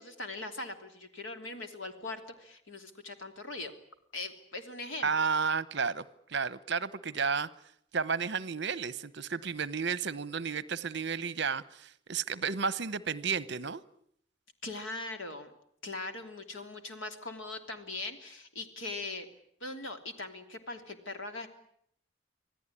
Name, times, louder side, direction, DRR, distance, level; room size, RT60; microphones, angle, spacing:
voice 1, 0.0-3.7 4.1-5.3 14.6-15.5 15.8-19.3 19.6-21.5, left 2 dB, 70° left, 6 dB, 3.1 m, -40 dB
voice 2, 5.0-6.0 6.3-7.5 7.9-13.8, right 5 dB, 55° right, 16 dB, 0.9 m, -32 dB
26.5 x 17.0 x 9.9 m, 0.70 s
head